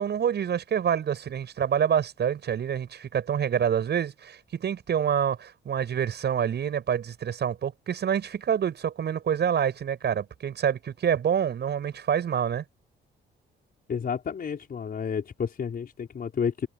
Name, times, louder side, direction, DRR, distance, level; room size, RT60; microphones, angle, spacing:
voice 1, 0.0-12.6, right 8 dB, 60° right, 7.6 m, -27 dB
voice 2, 13.9-16.7, left 7 dB, 50° left, 5.0 m, -30 dB
cardioid pair, 90°, 20 cm